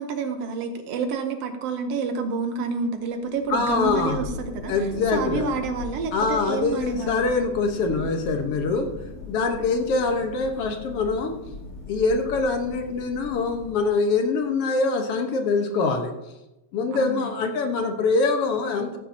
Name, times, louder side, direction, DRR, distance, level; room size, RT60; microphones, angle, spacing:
voice 1, 0.0-4.7 5.1-7.3 16.9-17.3, right 4 dB, 70° right, 6 dB, 1.6 m, -28 dB
Thunder, 3.2-14.2, left 3 dB, 80° left, 5.9 m, -39 dB
voice 2, 3.5-4.2 4.7-5.5 6.1-8.9 9.3-11.4 11.9-16.1 16.7-19.0, left 4 dB, 60° left, 5 dB, 1.8 m, -24 dB
14.5 x 8.9 x 2.8 m, 0.95 s
omnidirectional pair, 3.5 m